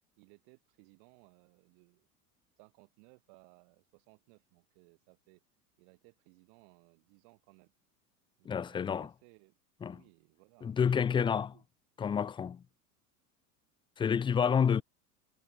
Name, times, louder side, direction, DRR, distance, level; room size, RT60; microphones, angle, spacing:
voice 1, 0.2-2.1 2.6-5.4 5.8-7.7 8.4-9.6 9.8-11.6 14.1-14.8, right 40 dB or more, 60° right, 6.9 m, -62 dB
voice 2, 8.5-9.1 9.8-10.0 10.6-11.5 12.0-12.6 14.0-14.8, left 7 dB, 10° left, 0.4 m, -29 dB
hypercardioid pair, 90°, 46 cm